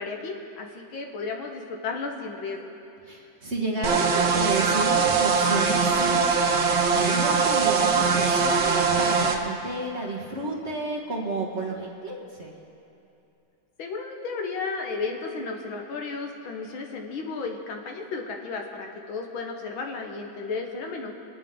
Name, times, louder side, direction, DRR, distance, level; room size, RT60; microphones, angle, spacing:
voice 1, 0.0-2.7 13.8-21.1, left 4 dB, 85° left, 2 dB, 2.0 m, -33 dB
voice 2, 3.1-6.2 6.9-12.5, right 2 dB, 35° right, -2 dB, 1.8 m, -31 dB
sound 1, 3.8-9.4, right 5 dB, 75° right, 1.7 m, -22 dB
26.5 x 9.1 x 3.8 m, 2.7 s
omnidirectional pair, 2.1 m